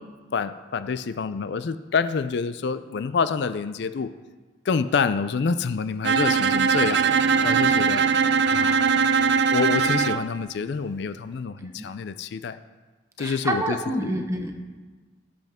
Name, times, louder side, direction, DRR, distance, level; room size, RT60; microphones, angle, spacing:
voice 1, 0.3-4.1 4.7-8.0 8.5-8.9 9.5-12.6 13.2-14.2, left 5 dB, 60° left, 13 dB, 0.4 m, -27 dB
Bowed string instrument, 6.0-10.3, right 6 dB, 60° right, 0.4 m, -21 dB
voice 2, 11.6-11.9 13.2-14.5, right 1 dB, 15° right, 3 dB, 1.0 m, -28 dB
17.5 x 7.7 x 3.6 m, 1.3 s
head